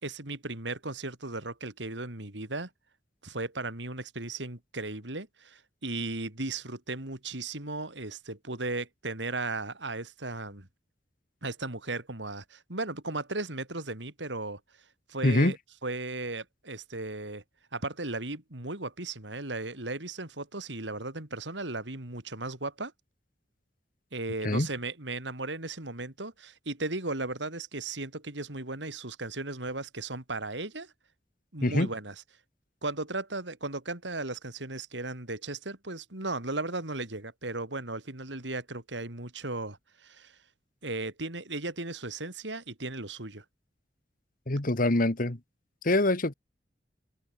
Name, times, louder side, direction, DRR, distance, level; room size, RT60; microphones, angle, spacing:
voice 1, 0.0-2.7 3.2-10.7 11.4-14.6 15.1-15.6 15.8-17.4 17.7-22.9 24.1-30.9 31.5-32.1 32.8-40.4 40.8-43.4, right 2 dB, 75° right, 4.2 m, -36 dB
voice 2, 15.2-15.5 24.4-24.7 31.6-31.9 44.5-45.4 45.8-46.3, left 1 dB, 50° left, 1.8 m, -24 dB
open air
head